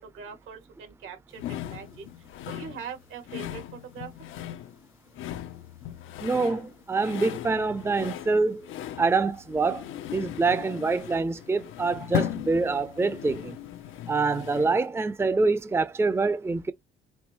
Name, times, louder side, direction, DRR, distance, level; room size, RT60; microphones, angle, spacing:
voice 1, 0.1-1.4 1.7-2.0 2.5-3.6 3.9-4.1, right 6 dB, 85° right, 2.2 m, -41 dB
sound 1, 1.4-14.9, left 12 dB, 80° left, 0.7 m, -37 dB
voice 2, 6.2-8.6 9.0-9.8 10.1-13.6 14.1-16.7, right 3 dB, 10° right, 0.5 m, -25 dB
5.5 x 2.6 x 3.0 m
cardioid pair, 90°, 20 cm